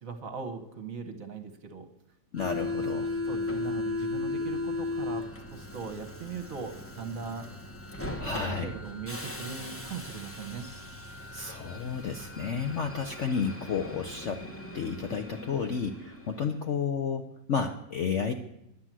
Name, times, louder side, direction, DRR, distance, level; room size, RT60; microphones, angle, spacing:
voice 1, 0.0-1.9 3.3-7.5 8.2-10.7, right 5 dB, 50° right, 7 dB, 1.4 m, -39 dB
voice 2, 2.3-3.1 8.2-8.7 11.3-14.5 14.7-18.3, left 6 dB, 60° left, 5 dB, 0.8 m, -31 dB
Subway metro underground, 2.3-16.7, left 2 dB, 10° left, 0.6 m, -37 dB
10.5 x 9.7 x 7.4 m, 0.85 s
omnidirectional pair, 2.0 m